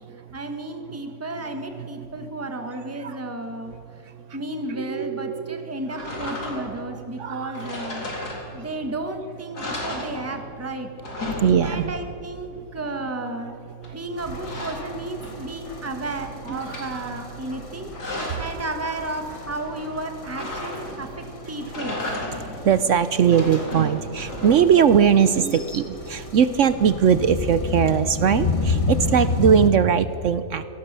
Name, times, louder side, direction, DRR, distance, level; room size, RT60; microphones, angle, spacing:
voice 1, 0.3-3.7 4.3-10.9 11.6-13.6 13.9-17.9 18.4-21.9, right 2 dB, 10° right, 5 dB, 1.4 m, -33 dB
voice 2, 0.8-2.3 3.0-3.2 3.7-3.8 4.1-4.4 4.7-7.7 8.0-8.7 9.7-9.8 11.4-12.0 12.5-12.7 13.4-14.0 15.4-15.9 16.5-17.8 18.1-18.5 22.3-30.7, right 8 dB, 60° right, 13 dB, 0.9 m, -22 dB
sound 1, 6.0-6.8 7.5-8.8 9.2-9.3 9.5-10.6 10.9-12.1 13.8-15.6 16.0-16.9 17.6-18.6 20.3-21.1 21.6-22.6 23.1-24.9, left 2 dB, 85° left, 4.4 m, -34 dB
sound 2, 14.2-29.7, left 3 dB, 20° left, 1.3 m, -31 dB
25.0 x 18.5 x 6.8 m, 2.7 s
omnidirectional pair, 1.7 m